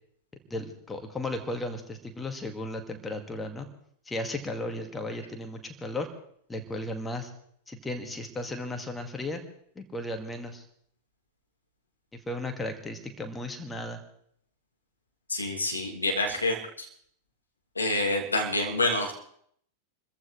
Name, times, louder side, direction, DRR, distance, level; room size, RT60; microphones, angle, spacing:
voice 1, 0.5-3.7 4.1-6.1 6.5-7.3 7.7-9.4 9.8-10.7 12.1-14.0, left 1 dB, 10° left, 5 dB, 2.0 m, -35 dB
voice 2, 15.3-16.9 17.8-19.2, left 2 dB, 80° left, 0 dB, 2.8 m, -27 dB
28.0 x 14.5 x 3.3 m, 0.65 s
figure-of-eight pair, 90°, 0 cm